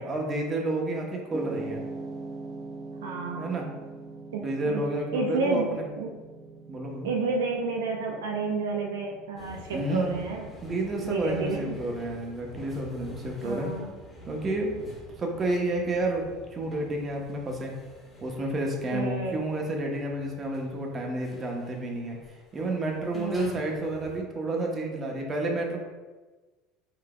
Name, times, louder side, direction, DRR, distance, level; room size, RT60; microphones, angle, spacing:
voice 1, 0.0-1.8 3.3-3.7 4.4-5.9 6.7-7.1 9.7-10.1 10.6-13.7 14.3-17.7 18.2-22.2 22.5-25.8, right 1 dB, 30° right, 0 dB, 0.9 m, -30 dB
sound 1, 1.3-19.6, right 3 dB, 10° right, 0.5 m, -45 dB
voice 2, 3.0-3.5 4.3-4.8 5.1-5.7 6.0-6.1 7.0-10.4 11.0-11.8 13.4-13.9 18.9-19.4 23.1-23.5, right 3 dB, 80° right, 0 dB, 0.4 m, -30 dB
sound 2, 9.4-24.2, equal, 10° left, 1.3 m, -48 dB
4.5 x 3.8 x 2.3 m, 1.3 s
hypercardioid pair, 75°, 0 cm